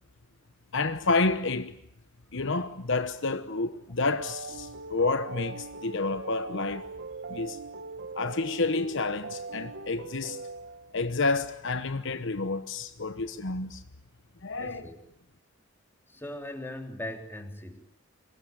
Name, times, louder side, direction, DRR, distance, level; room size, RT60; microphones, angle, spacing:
voice 1, 0.7-1.7 2.3-6.9 7.3-7.6 8.1-10.4 10.9-13.8 14.4-14.8, left 3 dB, 60° left, 1.1 m, -29 dB
sound 1, 4.0-11.0, right 3 dB, 55° right, 1.4 m, -41 dB
voice 2, 14.6-15.0 16.1-17.8, left 1 dB, 10° left, 3.3 m, -39 dB
26.0 x 21.5 x 9.2 m
head